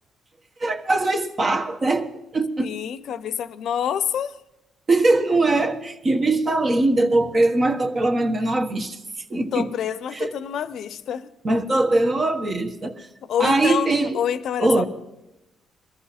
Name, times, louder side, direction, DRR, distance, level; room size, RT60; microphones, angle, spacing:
voice 1, 0.6-2.7 4.9-9.0 9.3-9.7 10.1-10.3 11.4-13.1 13.4-14.2 14.6-14.8, right 2 dB, 40° right, 1.4 m, -21 dB
voice 2, 2.6-4.4 9.5-11.3 13.2-14.8, left 9 dB, 70° left, 0.7 m, -27 dB
22.0 x 13.5 x 4.2 m
cardioid pair, 90°, 0 cm